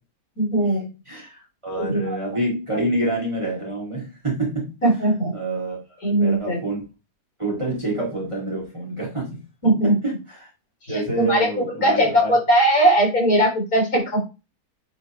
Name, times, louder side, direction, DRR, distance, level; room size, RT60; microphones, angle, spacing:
voice 1, 0.4-0.9 1.8-2.2 4.8-5.3 6.0-6.6 9.6-9.9 10.9-14.2, right 1 dB, 55° left, 0 dB, 4.2 m, -19 dB
voice 2, 1.1-4.7 5.3-5.8 6.2-6.8 7.4-9.4 9.8-10.5 10.9-12.4, right 2 dB, 15° right, -3 dB, 2.9 m, -27 dB
9.5 x 5.0 x 3.2 m, 0.28 s
omnidirectional pair, 1.8 m